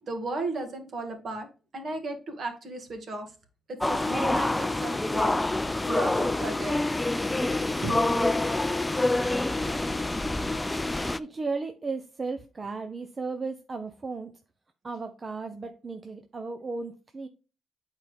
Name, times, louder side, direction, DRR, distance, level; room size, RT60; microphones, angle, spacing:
voice 1, 0.0-3.3 3.8-6.8 7.6-8.0, right 2 dB, 45° right, 2.1 m, -35 dB
sound 1, 3.8-11.2, left 2 dB, 10° left, 0.4 m, -27 dB
voice 2, 11.2-14.3 14.8-17.3, right 4 dB, 30° right, 0.7 m, -35 dB
9.1 x 4.5 x 3.4 m
cardioid pair, 120°, 0 cm